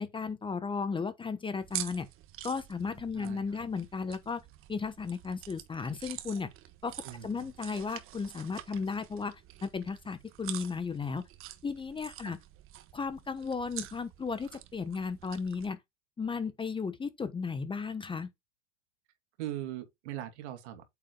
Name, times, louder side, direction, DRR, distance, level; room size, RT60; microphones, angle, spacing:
voice 1, 0.0-2.1 2.4-4.4 4.7-6.5 6.8-6.9 7.2-11.2 11.6-12.4 12.9-15.8 16.2-18.3, left 5 dB, 15° left, 1.1 m, -35 dB
sound 1, 1.6-15.7, right 13 dB, 35° right, 1.4 m, -46 dB
voice 2, 3.1-3.7 7.0-7.5 12.2-12.3 19.4-20.9, right 12 dB, 65° right, 2.7 m, -41 dB
8.7 x 7.6 x 2.3 m
hypercardioid pair, 115°, 37 cm